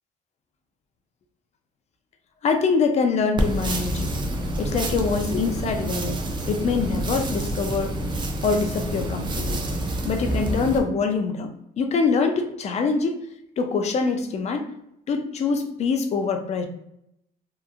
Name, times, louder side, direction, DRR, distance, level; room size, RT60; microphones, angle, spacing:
voice 1, 2.4-4.1 4.6-6.2 6.5-7.9 8.4-9.6 10.0-13.3 13.6-14.7 15.1-16.7, left 4 dB, 40° left, 6 dB, 0.4 m, -24 dB
sound 1, 3.4-10.8, right 1 dB, 25° right, 0.4 m, -28 dB
2.8 x 2.4 x 2.4 m, 0.79 s
cardioid pair, 110°, 17 cm